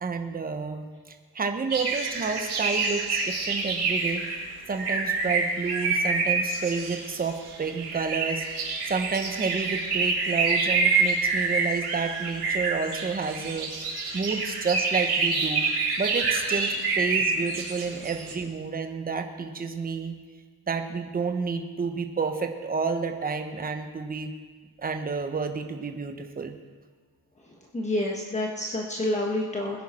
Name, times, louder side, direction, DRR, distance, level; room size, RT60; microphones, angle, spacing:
voice 1, 0.0-4.2 4.7-8.4 8.9-13.7 14.1-15.6 16.0-20.1 20.7-24.3 24.8-26.6, right 5 dB, 25° right, 6 dB, 1.0 m, -30 dB
sound 1, 1.7-18.3, right 4 dB, 85° right, 4.6 m, -27 dB
voice 2, 27.7-29.8, left 1 dB, 20° left, -2 dB, 1.2 m, -28 dB
21.0 x 10.5 x 4.3 m, 1.5 s
wide cardioid pair, 165°, 38 cm